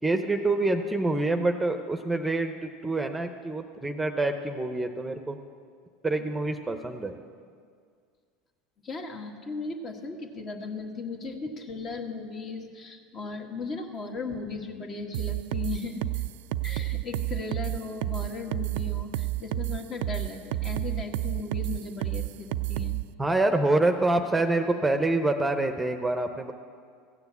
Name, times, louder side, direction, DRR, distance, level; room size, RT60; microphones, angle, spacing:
voice 1, 0.0-5.4 6.0-7.2 23.2-26.5, right 2 dB, 10° right, 7 dB, 0.8 m, -26 dB
voice 2, 8.8-16.0 16.6-23.0, left 4 dB, 40° left, 3 dB, 1.6 m, -37 dB
sound 1, 15.1-23.0, right 16 dB, 75° right, 0.3 m, -30 dB
15.0 x 6.9 x 8.3 m, 2.1 s
hypercardioid pair, 95°, 0 cm